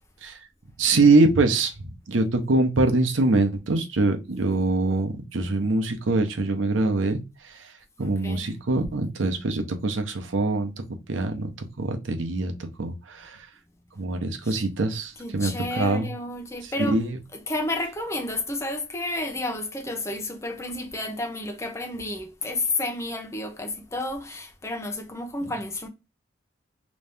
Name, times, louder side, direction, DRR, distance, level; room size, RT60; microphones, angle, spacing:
voice 1, 0.8-7.2 8.0-10.7 11.1-11.5 11.8-13.4 14.0-16.1 16.9-17.2 25.4-25.5, right 2 dB, 85° right, 0.8 m, -23 dB
voice 2, 8.0-8.5 14.4-14.6 15.2-17.0 17.3-25.9, left 2 dB, 15° left, 0.6 m, -31 dB
3.1 x 2.7 x 3.4 m
head